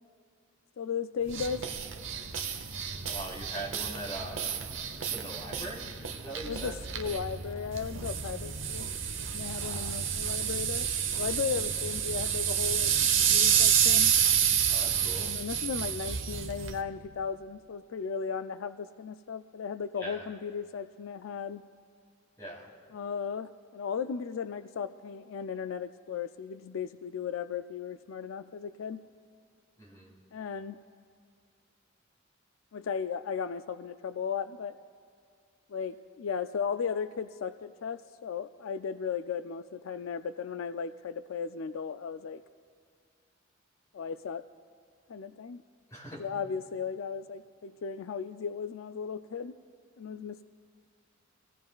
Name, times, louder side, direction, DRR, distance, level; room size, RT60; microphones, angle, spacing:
voice 1, 0.8-1.6 6.4-8.9 9.3-10.9 11.2-14.1 15.2-21.7 22.9-29.0 30.3-30.8 32.7-34.7 35.7-42.4 43.9-44.4 45.1-45.6 46.2-49.6 50.0-50.4, left 6 dB, 85° left, 11 dB, 0.4 m, -36 dB
sound 1, 1.3-16.8, right 8 dB, 70° right, 0.9 m, -29 dB
voice 2, 3.1-4.6 4.9-6.8 9.6-9.9 14.7-15.3 20.0-20.2 22.4-22.7 29.8-30.1 45.9-46.2, right 1 dB, 15° left, -5 dB, 3.6 m, -41 dB
26.5 x 16.5 x 2.4 m, 2.1 s
head